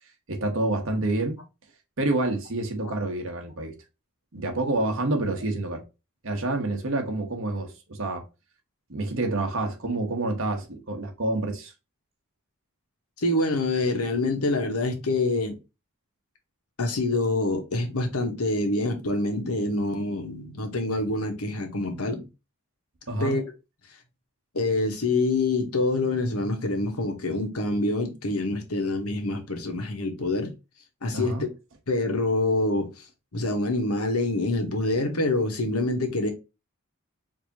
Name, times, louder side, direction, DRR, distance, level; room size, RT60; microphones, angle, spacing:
voice 1, 0.3-1.4 2.0-3.7 4.3-5.8 6.2-8.2 8.9-11.7 23.1-23.4 31.1-31.5, right 2 dB, 60° right, 1.1 m, -28 dB
voice 2, 13.2-15.6 16.8-22.3 23.2-23.4 24.5-30.5 31.0-31.5 31.9-32.9 33.3-36.3, left 2 dB, 80° left, 1.1 m, -26 dB
4.7 x 2.8 x 2.7 m
head